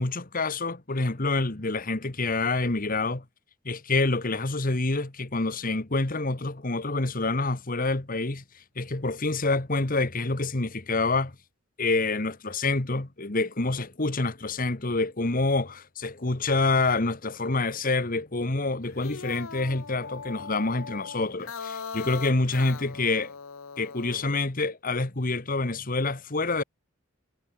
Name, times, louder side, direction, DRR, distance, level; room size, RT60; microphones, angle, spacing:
voice 1, 0.0-3.2 3.6-8.4 8.7-11.3 11.8-23.3 23.8-26.6, left 3 dB, 40° left, 1.5 m, -27 dB
sound 1, 18.8-24.3, left 5 dB, 90° left, 1.0 m, -40 dB
head